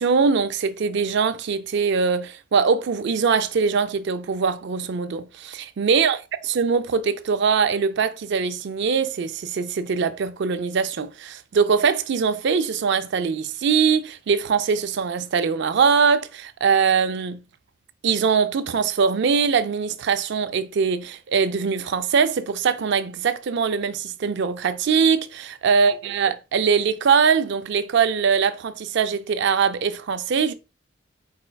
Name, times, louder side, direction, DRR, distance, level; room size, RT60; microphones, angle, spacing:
voice 1, 0.0-6.2 6.5-17.4 18.0-30.5, right 6 dB, 60° right, 0.4 m, -22 dB
4.4 x 4.2 x 2.3 m
head